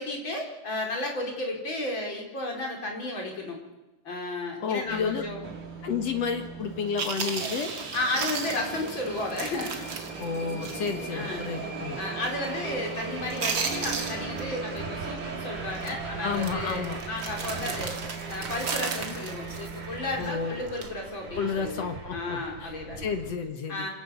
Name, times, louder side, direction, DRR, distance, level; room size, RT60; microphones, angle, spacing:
voice 1, 0.0-3.6 4.0-5.4 7.9-9.9 11.1-11.4 12.0-18.0 18.3-21.8 22.1-23.1 23.7-23.9, left 2 dB, 35° left, 0 dB, 5.0 m, -33 dB
voice 2, 4.6-5.3 5.8-7.7 10.2-12.0 16.2-17.0 20.2-20.6 21.3-23.9, left 6 dB, 55° left, 6 dB, 2.4 m, -31 dB
sound 1, 4.8-20.3, right 5 dB, 10° left, 1.2 m, -44 dB
Subway metro underground, 5.4-23.3, right 4 dB, 75° right, 5.0 m, -39 dB
Chewing mastication, 6.6-6.7 7.0-11.0 11.3-11.4 11.9-12.2 12.5-13.0 13.3-14.8 15.0-15.3 15.7-15.9 16.3-20.3 20.7-20.9, right 5 dB, 40° right, 2.5 m, -35 dB
27.0 x 18.0 x 7.1 m, 1.1 s
omnidirectional pair, 3.8 m